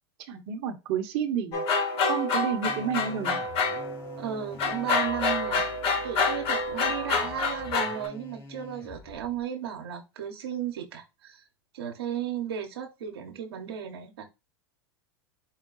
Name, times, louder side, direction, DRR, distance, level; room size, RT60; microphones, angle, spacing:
voice 1, 0.3-1.6 2.1-3.4, right 7 dB, 55° right, 1.0 m, -30 dB
sound 1, 1.5-4.2 4.6-8.1, left 3 dB, 50° left, 1.5 m, -27 dB
sound 2, 2.6-9.4, left 3 dB, 20° left, 1.4 m, -46 dB
voice 2, 4.2-5.7 6.0-11.4 11.7-14.2, right 9 dB, 85° right, 1.0 m, -35 dB
4.8 x 2.3 x 3.9 m
hypercardioid pair, 105°, 13 cm